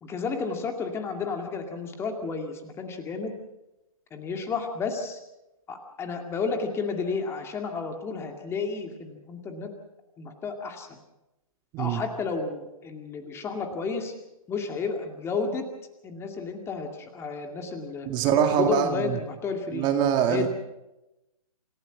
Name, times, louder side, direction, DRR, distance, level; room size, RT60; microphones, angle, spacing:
voice 1, 0.0-3.3 4.1-5.2 5.7-9.7 10.2-11.0 11.8-14.1 14.5-15.6 16.0-18.1 18.4-19.9 20.3-20.5, left 4 dB, 15° left, 4 dB, 2.2 m, -32 dB
voice 2, 18.1-19.2 19.7-20.5, right 8 dB, 25° right, 5 dB, 2.1 m, -23 dB
28.0 x 16.5 x 6.1 m, 0.94 s
figure-of-eight pair, 125°, 19 cm